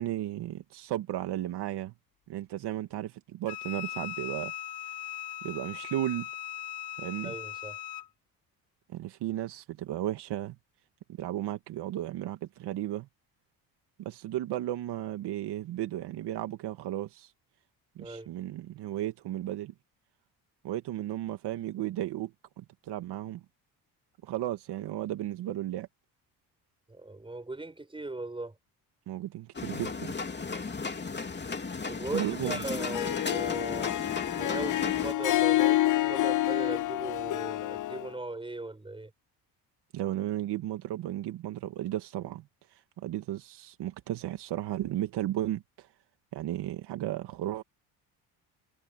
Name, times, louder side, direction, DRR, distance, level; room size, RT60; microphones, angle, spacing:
voice 1, 0.0-1.9 2.3-4.5 5.4-6.3 7.0-7.4 8.9-10.6 11.2-13.1 14.0-17.3 18.0-19.7 20.6-23.4 24.2-25.9 29.1-30.1 32.1-32.6 39.9-42.5 43.0-45.9 46.3-47.6, right 13 dB, 75° right, 2.1 m, -34 dB
Wind instrument woodwind instrument, 3.5-8.1, left 12 dB, 80° left, 2.4 m, -39 dB
voice 2, 7.2-7.8 18.0-18.3 26.9-28.6 31.8-33.9 34.4-39.1, right 2 dB, 15° right, 5.3 m, -38 dB
sound 1, 29.5-35.1, left 4 dB, 25° left, 3.2 m, -35 dB
Harp, 32.8-38.1, left 15 dB, 50° left, 0.6 m, -28 dB
cardioid pair, 95°, 41 cm